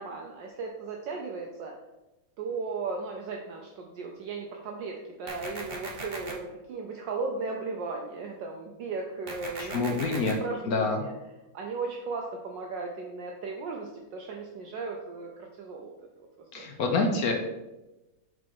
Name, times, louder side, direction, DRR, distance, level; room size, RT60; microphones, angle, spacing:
voice 1, 0.0-1.7 2.4-11.1 11.5-15.9 16.6-16.7, right 4 dB, 70° right, 1 dB, 1.3 m, -36 dB
sound 1, 5.3-6.3 9.3-10.3, right 2 dB, 40° right, 0.9 m, -38 dB
voice 2, 9.6-10.3 10.7-11.0 16.5-17.3, left 3 dB, 60° left, 3 dB, 1.0 m, -27 dB
6.2 x 4.2 x 4.6 m, 1.0 s
omnidirectional pair, 2.2 m